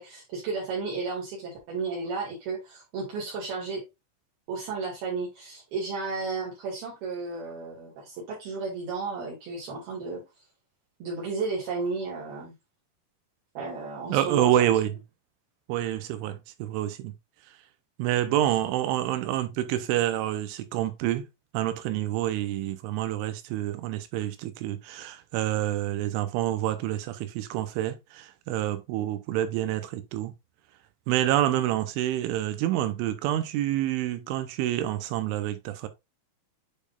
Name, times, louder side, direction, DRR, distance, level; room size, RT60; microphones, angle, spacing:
voice 1, 0.0-3.8 4.5-10.2 11.0-12.5 13.6-14.7 29.0-29.1, right 4 dB, 60° right, 3.9 m, -33 dB
voice 2, 14.1-15.0 15.7-17.1 18.0-21.3 21.5-30.4 31.1-35.9, right 13 dB, 85° right, 3.3 m, -27 dB
8.9 x 5.1 x 2.5 m
omnidirectional pair, 5.5 m